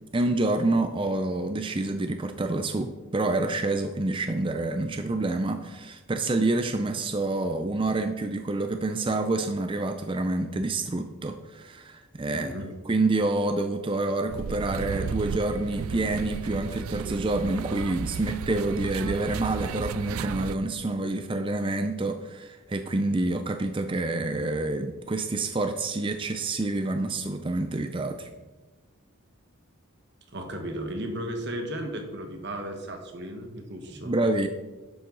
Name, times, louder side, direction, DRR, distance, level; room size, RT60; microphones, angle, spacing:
voice 1, 0.1-12.5 12.9-28.3 34.0-34.5, right 2 dB, 25° right, 7 dB, 0.4 m, -27 dB
voice 2, 12.3-12.7 30.3-34.1, right 1 dB, 55° right, 4 dB, 1.5 m, -35 dB
sound 1, 14.3-20.6, right 6 dB, 85° right, 0.4 m, -34 dB
11.0 x 7.7 x 4.0 m, 1.2 s
head